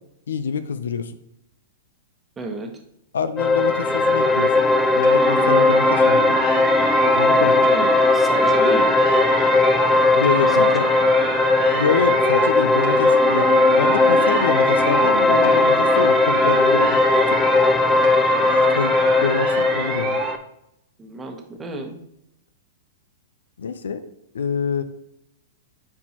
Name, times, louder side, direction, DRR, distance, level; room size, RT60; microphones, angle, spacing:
voice 1, 0.3-1.1 3.1-6.4 7.1-7.7 10.1-10.9 11.7-13.5 13.8-17.0 17.3-17.4 18.5-18.9 19.2-20.2 23.6-24.0 24.3-24.8, left 6 dB, 85° left, 12 dB, 0.5 m, -26 dB
voice 2, 2.4-2.7 7.6-8.9 10.5-10.7 11.2-11.3 21.0-22.0, right 2 dB, 15° right, 3 dB, 1.1 m, -32 dB
sound 1, 3.4-20.4, left 2 dB, 15° left, 0.7 m, -18 dB
sound 2, 5.0-7.3 7.6-9.9 10.2-12.5 12.8-15.2 15.4-17.8 18.0-20.4, right 9 dB, 50° right, 0.8 m, -30 dB
9.5 x 4.5 x 2.9 m, 0.81 s
hypercardioid pair, 130°, 0 cm